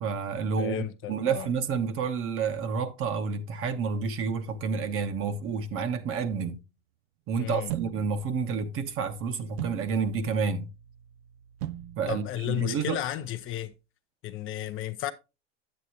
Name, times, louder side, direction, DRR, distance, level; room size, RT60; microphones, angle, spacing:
voice 1, 0.0-6.6 7.3-10.7 12.0-13.0, right 5 dB, 35° right, 1.1 m, -29 dB
voice 2, 0.6-1.5 7.4-7.7 12.1-13.7 14.2-15.1, left 12 dB, 35° left, 0.6 m, -33 dB
sound 1, 7.7-13.7, right 13 dB, 65° right, 0.6 m, -42 dB
9.1 x 8.4 x 2.9 m
hypercardioid pair, 85°, 36 cm